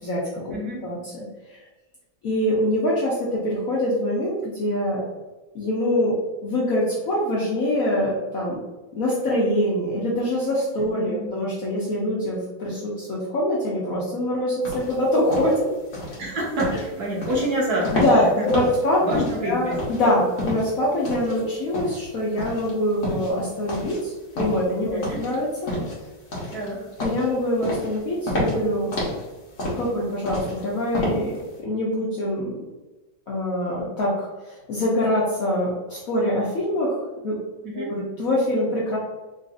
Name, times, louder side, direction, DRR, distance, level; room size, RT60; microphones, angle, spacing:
voice 1, 0.0-0.5 0.8-1.6 2.2-5.0 5.5-6.1 6.4-8.6 8.9-15.7 16.1-16.2 16.7-16.8 17.9-25.7 27.0-28.9 29.8-32.6 33.3-37.4 37.8-39.0, left 1 dB, 65° left, -6 dB, 0.8 m, -24 dB
voice 2, 0.5-0.8 11.0-11.3 16.2-18.0 18.4-18.7 19.0-19.8 24.9-25.2 26.5-26.8 37.6-37.9, right 1 dB, 60° right, -4 dB, 1.2 m, -27 dB
sound 1, 14.6-31.5, left 1 dB, 50° left, 1.1 m, -30 dB
3.8 x 2.5 x 2.5 m, 1.1 s
omnidirectional pair, 2.1 m